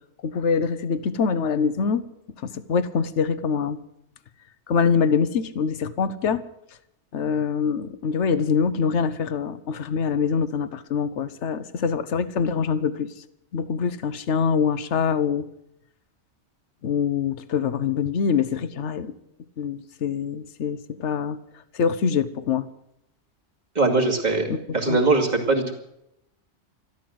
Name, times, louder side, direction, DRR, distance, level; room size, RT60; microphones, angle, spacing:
voice 1, 0.2-2.0 2.4-3.8 4.7-6.4 7.1-13.1 13.5-15.5 16.8-19.1 19.6-21.4 21.7-22.7 24.5-24.6 24.9-25.0, left 6 dB, 75° left, 14 dB, 1.2 m, -24 dB
voice 2, 23.7-24.5 24.7-25.7, right 3 dB, 35° right, 1 dB, 2.6 m, -21 dB
13.0 x 13.0 x 7.8 m, 0.80 s
omnidirectional pair, 1.2 m